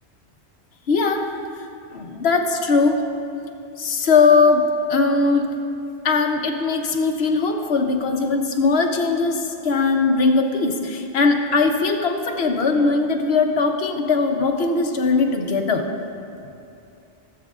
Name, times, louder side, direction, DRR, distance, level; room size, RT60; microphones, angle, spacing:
voice 1, 0.9-1.3 1.9-3.0 3.8-5.5 6.0-15.9, left 4 dB, 70° left, 4 dB, 1.0 m, -20 dB
17.0 x 7.5 x 2.4 m, 2.6 s
omnidirectional pair, 1.1 m